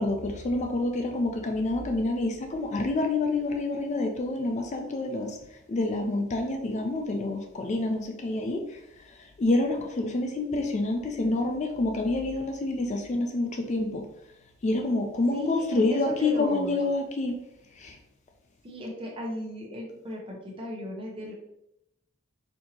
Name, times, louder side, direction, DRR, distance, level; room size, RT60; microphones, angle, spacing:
voice 1, 0.0-5.4 5.7-8.8 9.1-14.0 14.6-17.4 17.8-18.0, left 2 dB, 35° left, 4 dB, 0.4 m, -28 dB
voice 2, 15.3-16.8 18.6-21.3, left 1 dB, 25° right, -2 dB, 0.9 m, -36 dB
4.4 x 2.7 x 2.8 m, 0.82 s
head